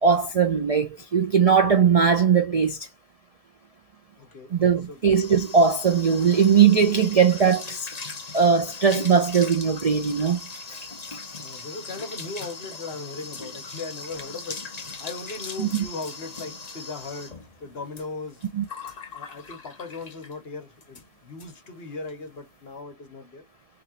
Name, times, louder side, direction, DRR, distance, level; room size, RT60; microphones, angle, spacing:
voice 1, 0.0-2.9 4.5-7.9 8.3-10.4 10.7-10.8 15.6-15.9 18.5-18.6, right 6 dB, 45° right, 0.5 m, -20 dB
voice 2, 4.2-4.6 4.9-5.0 11.4-14.6 15.0-18.4 19.1-23.4, left 3 dB, 55° left, 1.4 m, -38 dB
sound 1, 4.7-20.4 20.8-21.1 21.4-21.5 21.8-22.1, left 4 dB, 35° left, 0.9 m, -39 dB
3.6 x 3.5 x 2.8 m
omnidirectional pair, 1.3 m